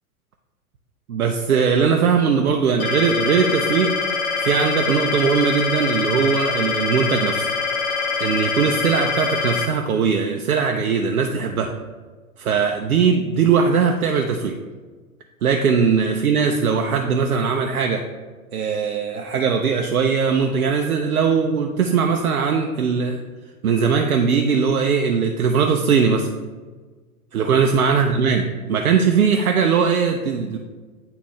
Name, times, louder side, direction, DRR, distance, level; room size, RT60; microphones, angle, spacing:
voice 1, 1.1-4.0 4.4-7.5 8.2-11.7 12.4-14.6 15.4-18.1 18.5-23.2 23.6-26.3 27.3-30.6, right 6 dB, 75° right, 3 dB, 0.6 m, -20 dB
sound 1, 2.8-9.7, left 5 dB, 30° left, 0.8 m, -24 dB
9.9 x 3.3 x 3.1 m, 1.4 s
figure-of-eight pair, 100°, 43 cm